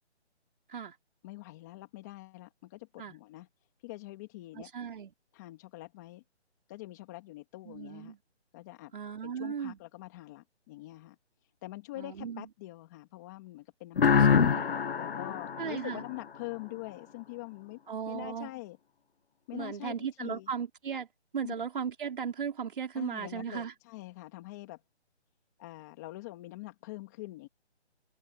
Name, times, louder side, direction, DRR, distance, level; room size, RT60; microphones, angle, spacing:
voice 1, 1.2-3.5 3.8-4.7 5.3-6.2 6.7-8.1 8.5-8.9 9.2-11.2 11.6-14.5 14.9-17.8 18.1-18.8 19.5-20.5 21.4-21.5 23.0-24.8 25.6-27.5, left 19 dB, 15° left, 1.9 m, -44 dB
voice 2, 4.5-5.1 7.6-8.2 8.9-9.8 12.0-12.5 14.1-14.7 15.6-16.0 17.9-18.5 19.5-21.1 21.3-23.7, right 7 dB, 50° right, 4.6 m, -36 dB
sound 1, 14.0-16.6, left 7 dB, 55° left, 1.0 m, -26 dB
open air
hypercardioid pair, 170°, 34 cm